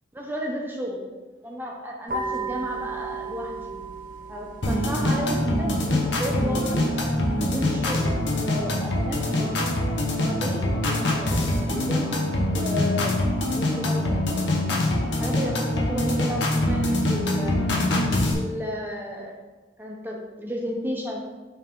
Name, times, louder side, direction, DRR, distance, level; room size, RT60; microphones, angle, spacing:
voice 1, 0.1-1.1 1.4-3.8 4.3-6.8 7.4-9.5 10.1-12.2 12.5-13.2 13.5-14.7 15.1-17.6 18.3-19.4 19.8-21.3, equal, 10° right, -1 dB, 0.8 m, -33 dB
sound 1, 2.1-9.1, right 3 dB, 45° right, 0.8 m, -37 dB
sound 2, 4.6-18.3, left 1 dB, 75° left, 1.0 m, -24 dB
7.6 x 3.6 x 3.7 m, 1.3 s
head